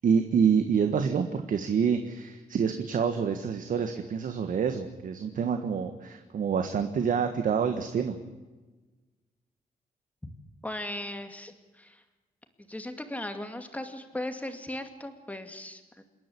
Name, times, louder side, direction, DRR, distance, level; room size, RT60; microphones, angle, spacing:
voice 1, 0.0-8.2, right 6 dB, 65° right, 7 dB, 1.6 m, -27 dB
voice 2, 10.6-12.0 12.7-16.0, left 1 dB, 10° left, 7 dB, 2.4 m, -37 dB
27.5 x 11.0 x 9.9 m, 1.2 s
cardioid pair, 110°, 15 cm